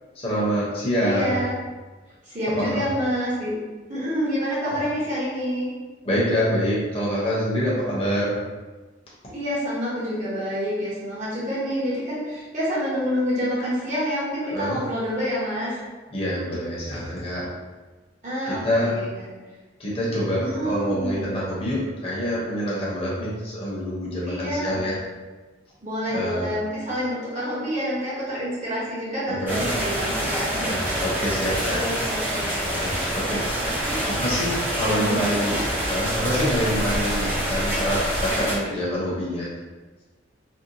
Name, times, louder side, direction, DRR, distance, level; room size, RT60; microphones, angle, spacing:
voice 1, 0.1-1.4 2.6-2.8 4.6-4.8 6.0-8.4 14.4-14.8 16.1-17.5 18.4-19.0 19.8-25.0 26.1-26.5 29.3-29.7 30.6-31.8 32.8-33.4 34.0-35.6 35.9-39.5, equal, 30° left, -7 dB, 0.8 m, -26 dB
voice 2, 1.0-1.5 2.2-3.5 3.9-5.7 9.3-15.8 18.2-19.3 20.4-21.2 24.3-24.8 25.8-30.8 31.7-32.8 33.3-34.0 34.8-35.6, equal, 40° right, -9 dB, 0.8 m, -28 dB
sound 1, 29.5-38.6, right 1 dB, 10° right, 0.5 m, -26 dB
2.7 x 2.2 x 2.6 m, 1.3 s
head